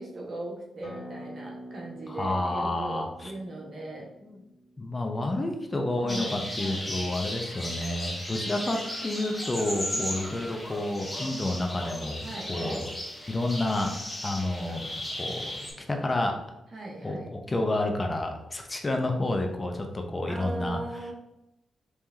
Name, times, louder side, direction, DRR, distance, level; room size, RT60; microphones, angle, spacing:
voice 1, 0.0-4.1 6.0-6.8 9.9-10.1 12.2-12.9 16.7-17.3 20.3-21.1, right 2 dB, 55° right, -2 dB, 1.5 m, -39 dB
Acoustic guitar, 0.8-6.0, equal, 65° left, 1.1 m, -46 dB
voice 2, 2.1-3.3 4.2-4.4 4.8-12.9 13.3-14.0 14.2-16.4 17.0-21.1, left 2 dB, 30° left, 3 dB, 0.8 m, -30 dB
sound 1, 6.1-15.7, left 1 dB, 10° left, 1.6 m, -36 dB
4.8 x 3.4 x 2.9 m, 0.90 s
supercardioid pair, 45°, 0 cm